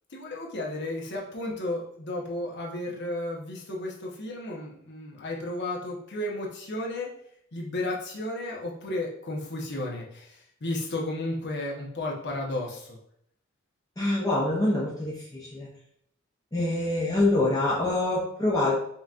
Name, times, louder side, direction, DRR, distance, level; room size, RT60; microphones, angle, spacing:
voice 1, 0.1-7.1 7.5-13.0, left 1 dB, 55° left, -2 dB, 0.9 m, -33 dB
voice 2, 14.0-15.7 16.5-18.8, left 2 dB, 15° left, -5 dB, 0.7 m, -25 dB
5.5 x 2.8 x 2.5 m, 0.70 s
head